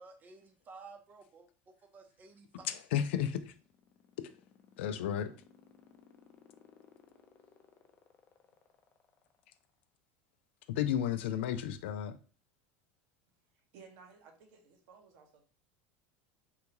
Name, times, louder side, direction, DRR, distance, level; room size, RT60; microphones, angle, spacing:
voice 1, 0.0-2.7, right 4 dB, 30° right, 0.7 m, -54 dB
voice 2, 2.6-3.5 4.8-5.3 10.7-12.2, left 10 dB, 85° left, 0.4 m, -33 dB
sound 1, 3.4-9.8, left 8 dB, 35° left, 0.5 m, -60 dB
voice 3, 13.5-15.4, right 5 dB, 70° right, 1.0 m, -57 dB
3.6 x 2.3 x 2.9 m
supercardioid pair, 115°, 6 cm